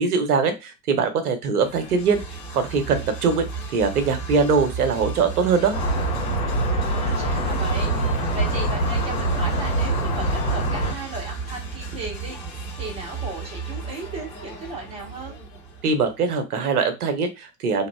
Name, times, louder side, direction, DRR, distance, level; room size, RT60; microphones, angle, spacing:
voice 1, 0.0-2.2 2.5-3.5 3.7-5.8 15.8-17.9, right 5 dB, 60° right, 8 dB, 0.9 m, -22 dB
sound 1, 1.6-16.3, right 4 dB, 10° left, 1.4 m, -34 dB
sound 2, 5.7-10.9, right 2 dB, 65° left, 1.6 m, -24 dB
voice 2, 6.5-15.4, right 2 dB, 10° right, -1 dB, 0.9 m, -36 dB
3.0 x 2.5 x 2.2 m, 0.24 s
figure-of-eight pair, 90°, 50 cm